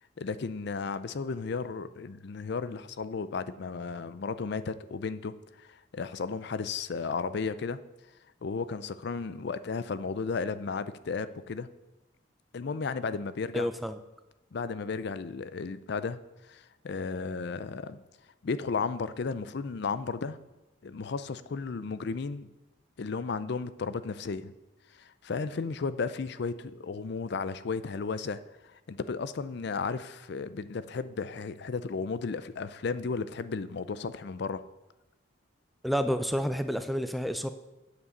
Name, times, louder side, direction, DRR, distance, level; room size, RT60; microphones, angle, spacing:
voice 1, 0.2-7.8 8.4-11.7 12.5-13.7 14.5-16.2 16.5-18.0 18.4-20.4 20.8-22.5 23.0-24.5 24.9-28.4 28.7-34.6, left 4 dB, 60° left, 14 dB, 0.5 m, -34 dB
voice 2, 13.5-14.0 35.8-37.5, equal, ahead, 9 dB, 0.4 m, -29 dB
8.3 x 7.3 x 6.5 m, 1.1 s
head